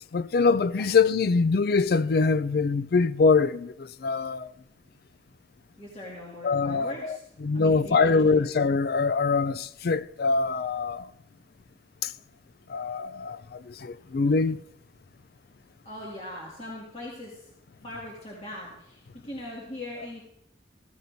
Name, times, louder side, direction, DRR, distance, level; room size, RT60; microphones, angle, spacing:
voice 1, 0.1-4.5 6.4-11.1 12.0-12.1 12.7-14.6, left 4 dB, 60° left, 0.4 m, -24 dB
voice 2, 5.8-7.2 7.5-8.4 15.9-17.4 17.8-20.3, left 1 dB, 35° left, 2.2 m, -40 dB
15.5 x 14.5 x 2.7 m
head